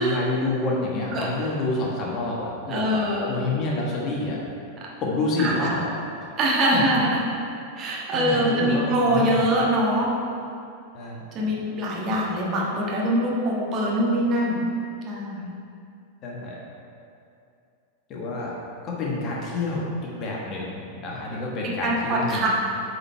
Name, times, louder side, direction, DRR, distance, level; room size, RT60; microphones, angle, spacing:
voice 1, 0.0-4.4 5.0-6.3 6.7-6.8 8.1-9.5 10.9-11.6 16.2-16.6 18.1-18.5 18.8-22.5, left 2 dB, 35° left, -3 dB, 1.4 m, -28 dB
voice 2, 2.7-3.4 5.4-5.7 6.4-7.2 7.7-10.1 11.3-14.6 15.0-15.6 21.6-22.5, right 1 dB, 30° right, -4 dB, 1.4 m, -23 dB
8.4 x 4.5 x 4.4 m, 2.5 s
figure-of-eight pair, 90°, 0 cm